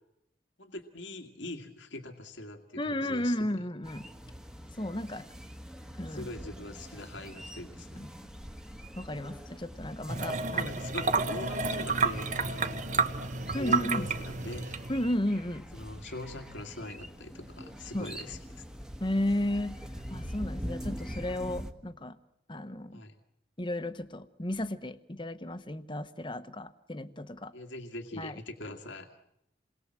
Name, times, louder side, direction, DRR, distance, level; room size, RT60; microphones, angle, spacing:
voice 1, 0.6-3.6 6.1-8.0 10.5-12.9 13.5-14.8 15.7-18.6 22.9-23.1 27.5-29.1, left 1 dB, 85° left, 5 dB, 2.1 m, -42 dB
voice 2, 2.8-4.1 4.7-5.3 6.0-6.3 7.9-8.1 9.0-10.7 13.5-14.1 14.9-15.6 17.9-18.1 19.0-19.8 20.1-22.2 22.5-23.0 23.6-27.5 28.2-28.4, left 1 dB, 25° left, 11 dB, 1.1 m, -33 dB
sound 1, 3.8-21.7, equal, 5° right, 1.4 m, -44 dB
sound 2, 10.1-15.1, right 4 dB, 40° right, 1.4 m, -30 dB
29.0 x 22.0 x 7.6 m, 0.84 s
head